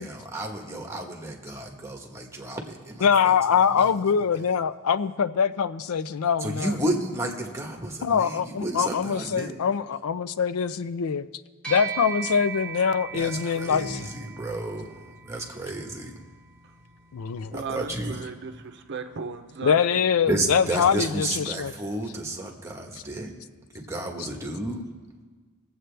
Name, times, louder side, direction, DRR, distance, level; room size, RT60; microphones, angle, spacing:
voice 1, 0.0-3.3 3.7-3.8 6.4-9.5 13.1-16.2 17.5-18.3 20.3-23.3 23.7-24.8, right 1 dB, 15° right, 1.2 m, -32 dB
voice 2, 3.0-6.8 8.0-11.3 11.7-14.1 17.1-17.5 19.6-21.7 24.2-24.3, left 7 dB, 70° left, 0.4 m, -24 dB
sound 1, 11.6-21.3, right 7 dB, 5° left, 1.8 m, -41 dB
voice 3, 17.5-20.1, right 5 dB, 55° right, 0.7 m, -36 dB
20.5 x 7.9 x 3.3 m
head